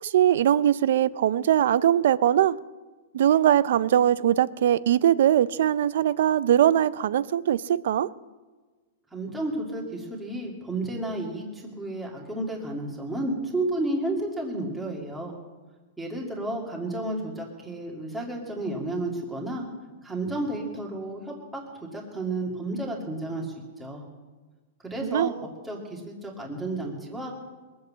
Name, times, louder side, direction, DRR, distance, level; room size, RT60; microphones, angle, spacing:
voice 1, 0.0-2.6 3.1-8.1 25.1-25.3, right 11 dB, 60° right, 0.5 m, -21 dB
voice 2, 9.1-15.3 16.0-19.6 20.0-24.1 24.9-25.3 25.6-27.3, right 2 dB, 5° right, 2.2 m, -32 dB
21.5 x 7.9 x 7.5 m
supercardioid pair, 170°, 0 cm